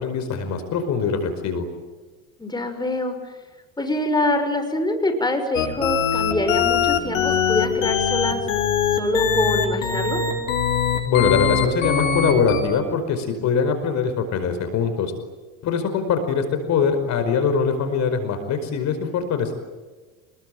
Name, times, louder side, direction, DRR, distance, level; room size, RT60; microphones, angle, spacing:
voice 1, 0.0-1.6 11.0-15.1 15.6-19.6, left 6 dB, 45° left, 8 dB, 5.1 m, -22 dB
voice 2, 2.4-3.2 3.8-8.4 8.9-10.2, left 2 dB, 10° left, 5 dB, 5.9 m, -24 dB
sound 1, 5.5-12.6, left 7 dB, 85° left, 5.6 m, -21 dB
28.0 x 21.5 x 9.3 m, 1.3 s
supercardioid pair, 100°, 38 cm